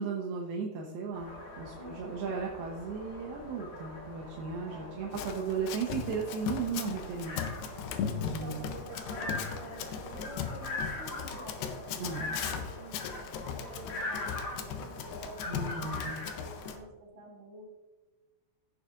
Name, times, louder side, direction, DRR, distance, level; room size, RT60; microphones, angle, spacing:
voice 1, 0.0-7.5 8.2-8.7 11.9-12.4 15.5-16.2, right 5 dB, 75° right, -1 dB, 2.5 m, -36 dB
sound 1, 1.1-16.8, left 2 dB, 40° left, 2.3 m, -42 dB
voice 2, 1.8-2.3 4.7-5.0 8.2-13.0 13.4-15.8 16.3-17.7, right 1 dB, 50° right, -4 dB, 3.3 m, -48 dB
Run, 5.1-16.8, left 7 dB, 80° left, 2.5 m, -38 dB
16.0 x 6.9 x 2.5 m, 1.2 s
omnidirectional pair, 5.0 m